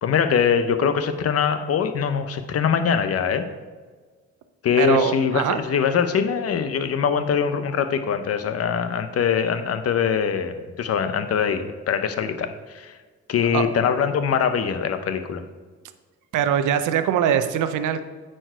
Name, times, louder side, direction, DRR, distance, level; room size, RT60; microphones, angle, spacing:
voice 1, 0.0-3.5 4.6-13.0 13.3-15.4, left 7 dB, 50° left, 10 dB, 0.7 m, -23 dB
voice 2, 4.8-5.6 13.5-13.7 16.3-18.0, right 9 dB, 80° right, 10 dB, 0.6 m, -22 dB
9.0 x 4.5 x 4.5 m, 1.4 s
cardioid pair, 90°, 30 cm